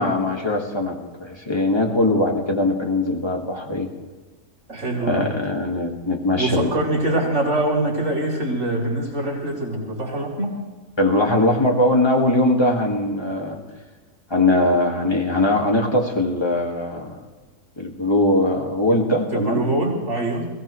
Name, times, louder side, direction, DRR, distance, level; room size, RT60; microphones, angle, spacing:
voice 1, 0.0-3.9 5.0-6.7 11.0-13.6 14.3-17.2 17.8-19.6, left 1 dB, 15° left, 1 dB, 1.7 m, -21 dB
voice 2, 4.7-5.3 6.3-10.6 19.3-20.5, right 1 dB, 55° right, -3 dB, 4.3 m, -24 dB
21.5 x 16.5 x 3.2 m, 1.3 s
omnidirectional pair, 1.7 m